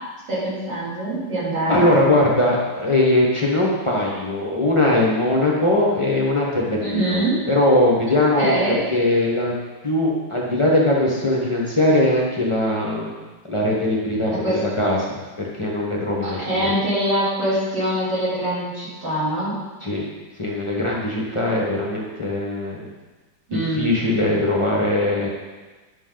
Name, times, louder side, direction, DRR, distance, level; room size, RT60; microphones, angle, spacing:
voice 1, 0.3-1.9 6.8-7.4 8.4-8.8 14.3-14.6 16.2-19.5 23.5-23.9, right 1 dB, 60° right, -9 dB, 3.7 m, -23 dB
voice 2, 1.7-7.2 7.5-9.5 9.8-13.1 13.5-15.0 15.4-16.7 19.8-20.1 20.4-22.9 23.5-25.3, left 1 dB, 20° left, -4 dB, 0.8 m, -20 dB
10.0 x 5.7 x 3.9 m, 1.3 s
omnidirectional pair, 2.2 m